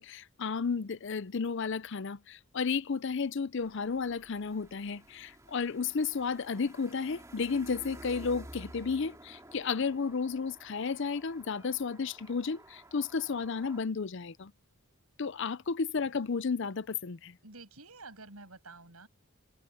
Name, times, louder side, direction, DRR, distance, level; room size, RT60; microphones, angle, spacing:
voice 1, 0.0-14.5 15.2-17.4, left 5 dB, 55° left, 0.6 m, -33 dB
sound 1, 3.6-13.8, right 1 dB, 15° right, 3.0 m, -52 dB
voice 2, 15.2-15.6 17.4-19.1, right 3 dB, 85° right, 7.5 m, -50 dB
head